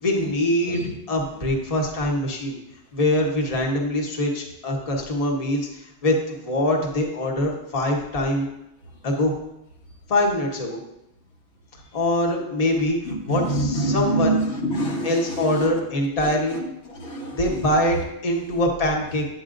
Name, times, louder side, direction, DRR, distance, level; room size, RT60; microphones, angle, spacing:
voice 1, 0.0-2.6 2.9-8.5 9.0-9.3 10.1-10.8 11.9-14.4 15.0-16.6 17.4-19.3, left 1 dB, 35° left, 0 dB, 1.0 m, -23 dB
voice 2, 13.1-15.8 16.2-16.7 16.9-17.4, right 2 dB, 80° left, -1 dB, 1.5 m, -26 dB
9.0 x 7.1 x 2.5 m, 0.87 s
omnidirectional pair, 1.2 m